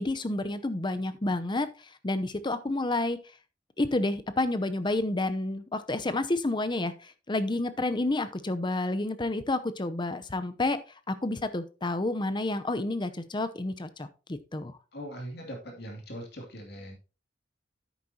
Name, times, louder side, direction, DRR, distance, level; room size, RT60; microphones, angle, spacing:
voice 1, 0.0-1.7 2.0-3.2 3.8-10.8 11.1-14.8, left 2 dB, 25° left, 11 dB, 0.7 m, -30 dB
voice 2, 14.9-16.9, equal, 60° left, 1 dB, 2.6 m, -41 dB
10.0 x 8.6 x 2.8 m, 0.33 s
head